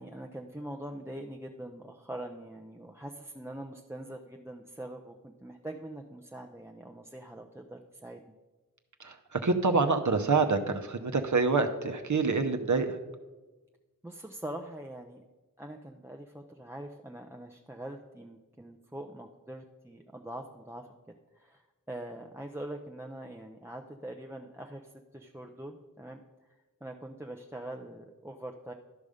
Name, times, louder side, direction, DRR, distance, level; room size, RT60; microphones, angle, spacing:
voice 1, 0.0-8.2 14.0-15.2 15.6-20.9 21.4-21.6 21.9-26.2 26.8-28.7, right 1 dB, 10° right, 3 dB, 0.5 m, -43 dB
voice 2, 9.0-13.0, right 4 dB, 60° right, 5 dB, 0.8 m, -27 dB
12.0 x 5.2 x 5.0 m, 1.2 s
wide cardioid pair, 50°, 33 cm